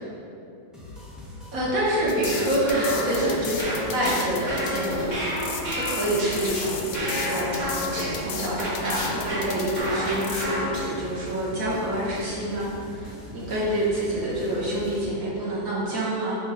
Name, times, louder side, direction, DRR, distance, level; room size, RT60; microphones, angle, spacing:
sound 1, 0.7-15.1, left 1 dB, ahead, 0.5 m, -41 dB
voice 1, 1.5-16.4, right 1 dB, 55° right, -7 dB, 1.7 m, -27 dB
sound 2, 2.1-10.4, left 6 dB, 80° left, 0.6 m, -35 dB
sound 3, 2.2-11.1, equal, 30° right, 1.0 m, -31 dB
6.4 x 3.0 x 4.9 m, 2.7 s
omnidirectional pair, 1.8 m